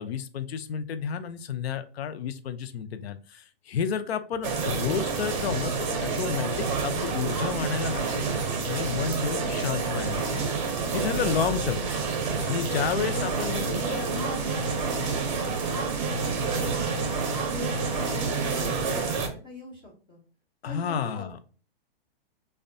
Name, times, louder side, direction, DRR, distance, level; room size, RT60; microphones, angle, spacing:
voice 1, 0.0-8.3 8.6-10.5 10.9-11.9 12.5-14.0 20.6-21.4, left 7 dB, 80° left, 10 dB, 0.5 m, -31 dB
sound 1, 4.4-19.3, right 4 dB, 35° right, 0.5 m, -28 dB
voice 2, 12.2-12.7 13.1-17.1 17.5-20.2 20.6-21.4, left 3 dB, 20° left, -4 dB, 0.4 m, -41 dB
2.6 x 2.1 x 2.5 m, 0.39 s
hypercardioid pair, 150°, 31 cm